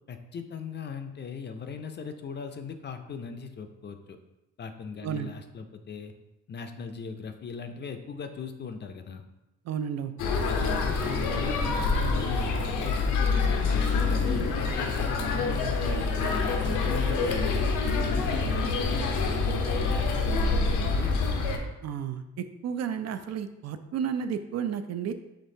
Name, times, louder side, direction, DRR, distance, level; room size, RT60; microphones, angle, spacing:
voice 1, 0.1-4.2 4.6-6.1 6.5-9.2 10.5-14.4 14.7-17.6 18.0-21.1, left 5 dB, 35° left, 7 dB, 0.4 m, -39 dB
voice 2, 9.7-10.1 21.8-25.1, right 8 dB, 60° right, 9 dB, 0.4 m, -32 dB
sound 1, 10.2-21.6, left 4 dB, 85° left, 0.7 m, -26 dB
5.2 x 3.4 x 2.7 m, 0.95 s
cardioid pair, 90°, 30 cm